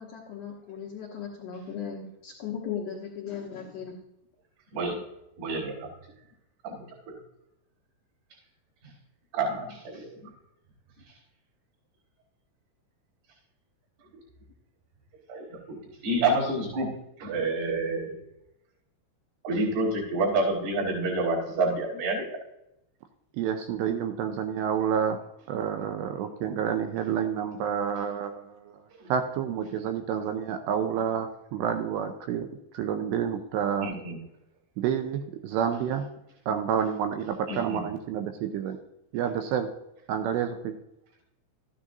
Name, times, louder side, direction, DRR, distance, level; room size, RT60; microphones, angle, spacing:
voice 1, 0.0-4.0, left 7 dB, 85° left, -3 dB, 1.7 m, -37 dB
voice 2, 5.4-5.9 6.6-7.2 9.3-10.3 15.3-18.2 19.4-22.2 28.9-29.1 33.8-34.2 37.5-37.8, right 2 dB, 55° right, -5 dB, 5.8 m, -29 dB
voice 3, 23.3-25.2 25.5-28.6 29.1-32.5 32.7-33.9 34.8-36.1 36.5-38.8 39.1-39.7 40.1-40.7, right 8 dB, 85° right, 6 dB, 2.6 m, -29 dB
13.5 x 9.8 x 2.6 m, 0.84 s
omnidirectional pair, 5.5 m